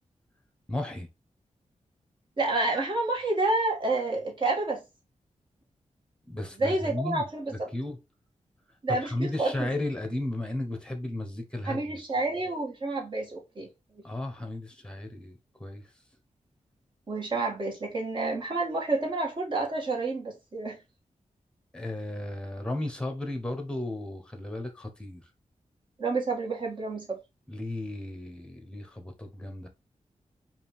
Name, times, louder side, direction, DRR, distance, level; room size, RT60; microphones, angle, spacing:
voice 1, 0.7-1.1 6.3-8.0 8.9-12.0 14.0-15.8 21.7-25.2 27.5-29.7, left 1 dB, 5° left, 1.0 m, -34 dB
voice 2, 2.4-4.8 6.6-7.7 8.8-9.7 11.6-13.7 17.1-20.8 26.0-27.2, right 2 dB, 40° right, 1.6 m, -29 dB
5.1 x 2.5 x 3.5 m
wide cardioid pair, 150°, 12 cm